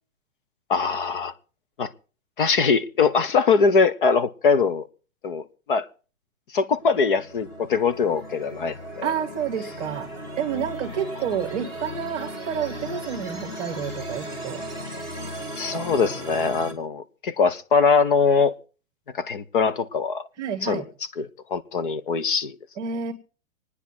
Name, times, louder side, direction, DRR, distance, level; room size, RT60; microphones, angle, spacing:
voice 1, 0.7-1.3 1.8-1.9 2.4-4.9 5.2-5.9 6.5-9.1 15.6-18.5 19.1-20.3 20.6-20.8 21.2-22.5, left 5 dB, 40° left, 0.9 m, -22 dB
sound 1, 6.7-16.7, equal, 10° left, 1.8 m, -36 dB
voice 2, 9.0-10.1 10.4-14.6 20.4-20.9 22.8-23.1, right 8 dB, 15° right, 1.4 m, -29 dB
26.0 x 9.9 x 4.3 m
hypercardioid pair, 175°, 40 cm